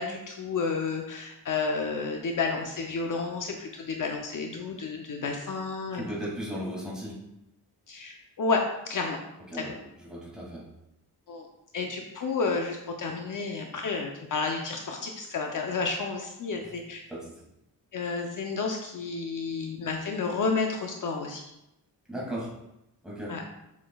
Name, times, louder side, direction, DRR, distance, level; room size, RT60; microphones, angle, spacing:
voice 1, 0.0-6.1 7.9-8.6 8.9-9.2 9.5-9.7 11.3-11.5 11.7-17.0 17.9-21.4 23.3-23.4, left 4 dB, 55° left, 2 dB, 0.7 m, -31 dB
voice 2, 6.0-7.2 9.5-9.8 10.1-10.6 16.6-16.7 17.1-17.3 22.1-22.5 23.0-23.4, equal, ahead, -6 dB, 2.3 m, -36 dB
7.4 x 7.3 x 2.3 m, 0.87 s
wide cardioid pair, 165°, 39 cm